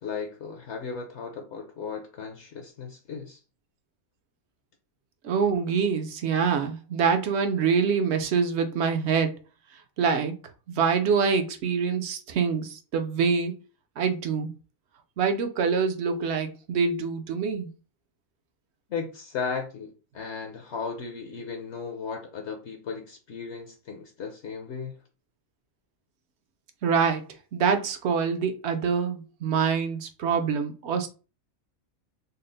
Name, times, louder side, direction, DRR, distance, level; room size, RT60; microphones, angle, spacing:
voice 1, 0.0-3.4 18.9-24.9, left 5 dB, 60° left, 0.9 m, -36 dB
voice 2, 5.2-9.3 10.0-10.3 10.7-13.5 14.0-14.5 15.2-17.7 26.8-27.2 27.5-31.1, right 6 dB, 60° right, 0.8 m, -25 dB
4.1 x 2.0 x 3.8 m
omnidirectional pair, 1.5 m